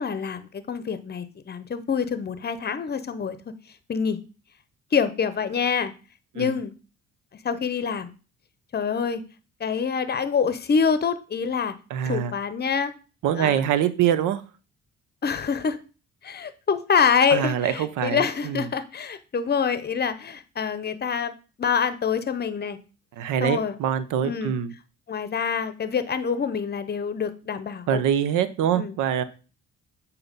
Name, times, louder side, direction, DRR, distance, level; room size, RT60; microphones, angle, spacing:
voice 1, 0.0-3.4 3.9-4.2 4.9-5.9 6.3-6.7 7.4-8.1 8.7-9.2 9.6-11.7 12.0-12.9 13.4-13.6 15.2-15.8 16.2-21.3 21.6-22.8 23.4-23.7 24.2-24.6 25.1-28.0 28.7-28.9, left 6 dB, 35° left, 12 dB, 0.7 m, -26 dB
voice 2, 11.9-12.3 13.2-14.4 17.3-18.7 23.2-24.7 27.9-29.2, right 9 dB, 85° right, 14 dB, 0.7 m, -24 dB
7.9 x 2.9 x 5.2 m, 0.35 s
cardioid pair, 90°, 30 cm